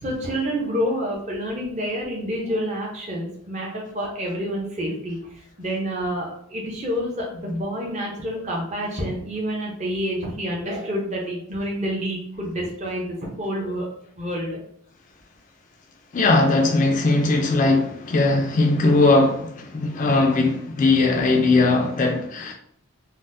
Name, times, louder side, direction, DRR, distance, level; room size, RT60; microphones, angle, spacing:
voice 1, 0.0-13.9 14.2-14.6, equal, 30° right, 0.6 m, -28 dB
voice 2, 16.1-22.5, left 2 dB, 35° left, 0.3 m, -19 dB
4.0 x 2.0 x 2.5 m
head